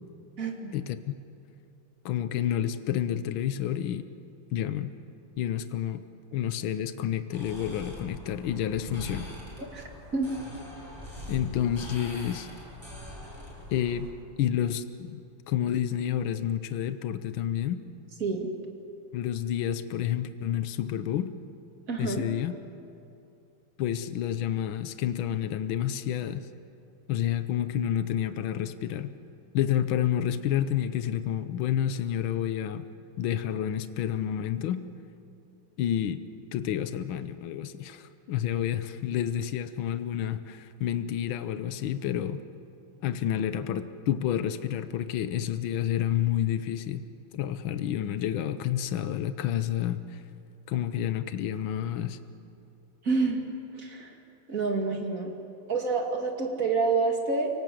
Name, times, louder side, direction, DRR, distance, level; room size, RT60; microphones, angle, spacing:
voice 1, 0.7-1.1 2.0-4.1 4.5-4.9 5.4-6.0 6.3-9.3 11.3-12.5 13.7-14.1 14.4-17.8 19.1-21.3 22.0-22.6 23.8-26.5 27.1-29.1 29.5-32.9 33.2-34.9 35.8-36.2 36.5-42.4 43.0-47.0 47.3-50.2 50.7-52.2, left 10 dB, 80° left, 11 dB, 1.7 m, -29 dB
sound 1, 7.3-14.1, equal, 10° right, 7.3 m, -42 dB
voice 2, 21.9-22.2 53.0-53.4 53.7-54.1 54.5-55.3 55.7-57.5, right 4 dB, 40° right, 2 dB, 2.9 m, -27 dB
30.0 x 18.5 x 7.8 m, 2.6 s
omnidirectional pair, 2.2 m